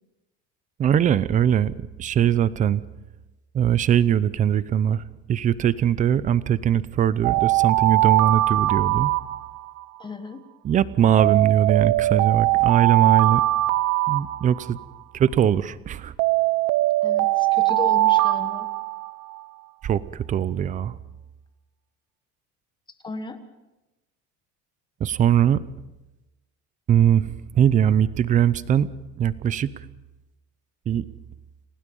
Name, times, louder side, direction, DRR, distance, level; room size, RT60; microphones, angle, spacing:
voice 1, 0.8-1.7 2.0-2.8 3.5-5.0 5.3-9.1 10.6-13.4 14.1-14.8 15.1-16.1 19.8-21.0 25.0-25.6 26.9-28.9 29.2-29.7 30.9-31.1, right 9 dB, 25° right, 17 dB, 0.6 m, -21 dB
Alarm, 7.2-9.8 11.2-14.8 16.2-19.4, right 17 dB, 65° right, 0.9 m, -21 dB
voice 2, 10.0-10.5 17.0-18.7 23.0-23.4, left 3 dB, 15° left, 8 dB, 1.3 m, -34 dB
29.5 x 17.5 x 5.4 m, 1.0 s
cardioid pair, 170°, 31 cm